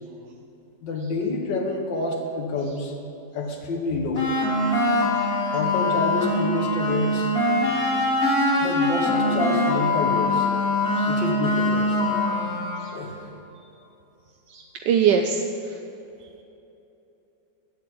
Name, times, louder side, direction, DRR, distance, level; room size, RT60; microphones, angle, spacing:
voice 1, 0.8-2.9 3.3-4.3 5.5-7.3 8.6-10.5 11.1-12.0 12.9-13.1, left 3 dB, 75° left, 2 dB, 1.9 m, -28 dB
sound 1, 4.2-13.0, left 1 dB, 50° left, 2.9 m, -23 dB
voice 2, 14.5-15.8, right 7 dB, 75° right, 4 dB, 1.2 m, -24 dB
8.4 x 7.6 x 8.4 m, 2.9 s
omnidirectional pair, 2.0 m